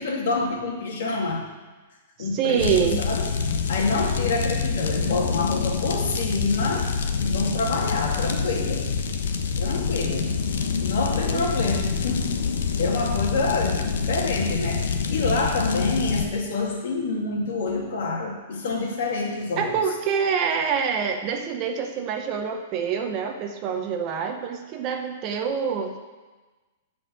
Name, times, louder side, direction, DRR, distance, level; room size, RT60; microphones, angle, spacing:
voice 1, 0.0-1.5 2.2-3.3 3.7-8.9 9.6-10.3 10.8-12.3 12.5-19.8, left 3 dB, 60° left, 0 dB, 2.4 m, -27 dB
voice 2, 2.2-3.0 11.1-11.5 19.6-26.0, right 7 dB, 25° right, 4 dB, 0.8 m, -26 dB
sound 1, 2.6-16.3, left 5 dB, 80° left, 1.1 m, -26 dB
12.0 x 5.2 x 7.7 m, 1.2 s
supercardioid pair, 175°, 0 cm